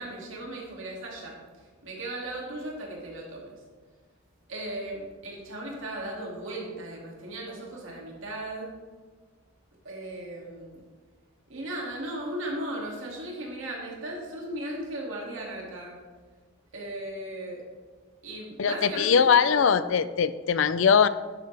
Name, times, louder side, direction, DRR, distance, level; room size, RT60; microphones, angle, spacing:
voice 1, 0.0-3.5 4.5-8.7 9.8-10.8 11.5-16.0 16.7-17.6 18.2-19.8, right 1 dB, 70° right, -2 dB, 2.5 m, -37 dB
voice 2, 18.6-21.1, left 6 dB, 70° left, 14 dB, 0.4 m, -21 dB
11.5 x 7.8 x 3.4 m, 1.4 s
head